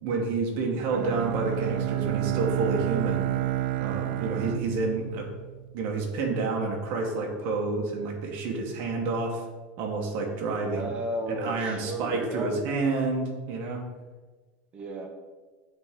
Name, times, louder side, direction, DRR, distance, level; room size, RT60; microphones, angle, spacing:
voice 1, 0.0-3.2 3.8-5.3 5.7-9.4 9.8-10.9 11.3-13.8, right 3 dB, 40° right, 0 dB, 1.0 m, -29 dB
Bowed string instrument, 0.9-5.9, right 14 dB, 65° right, 0.3 m, -30 dB
voice 2, 10.6-12.5 14.7-15.1, right 1 dB, 20° right, 3 dB, 0.6 m, -34 dB
8.2 x 3.5 x 3.5 m, 1.3 s
supercardioid pair, 175°, 5 cm